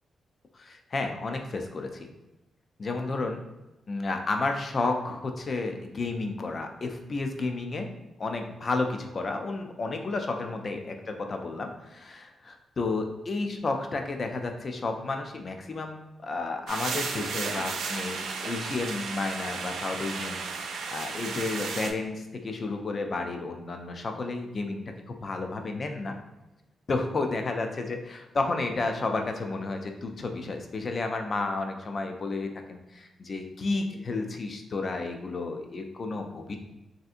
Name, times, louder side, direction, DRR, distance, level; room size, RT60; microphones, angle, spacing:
voice 1, 0.5-2.1 2.8-3.4 3.9-7.9 8.2-26.2 26.9-36.6, left 3 dB, 35° left, 4 dB, 0.4 m, -32 dB
sound 1, 16.7-21.9, right 5 dB, 80° right, 0.3 m, -34 dB
3.3 x 2.7 x 2.4 m, 1.0 s
wide cardioid pair, 140°, 0 cm